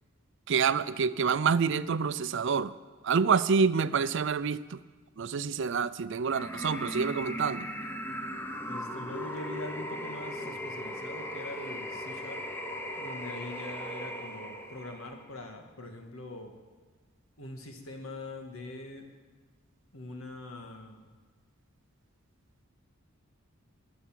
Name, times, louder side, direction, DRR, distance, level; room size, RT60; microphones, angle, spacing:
voice 1, 0.5-2.7 3.0-4.8 5.2-7.7, right 5 dB, 60° right, 16 dB, 0.5 m, -27 dB
sound 1, 6.2-15.3, equal, 10° left, 1.1 m, -38 dB
voice 2, 8.6-12.4 13.0-16.5 17.4-19.1 19.9-21.0, left 2 dB, 90° left, 4 dB, 1.9 m, -43 dB
20.5 x 7.1 x 7.5 m, 1.4 s
head